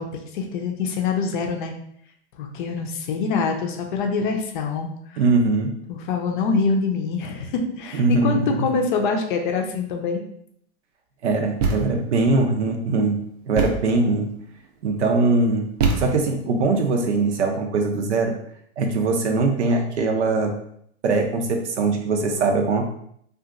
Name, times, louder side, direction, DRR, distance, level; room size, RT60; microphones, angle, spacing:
voice 1, 0.0-1.7 2.4-4.9 5.9-10.2, left 4 dB, 50° left, 3 dB, 0.5 m, -25 dB
voice 2, 5.2-5.7 7.9-8.7 11.2-13.2 13.5-14.3 14.8-15.7 16.0-18.3 18.8-20.5 21.0-22.8, right 3 dB, 75° right, 3 dB, 0.7 m, -21 dB
Thump thud, 11.6-12.2 13.5-14.0 15.8-16.5, right 4 dB, 40° right, 0.4 m, -24 dB
2.8 x 2.4 x 2.4 m, 0.68 s
hypercardioid pair, 140°, 34 cm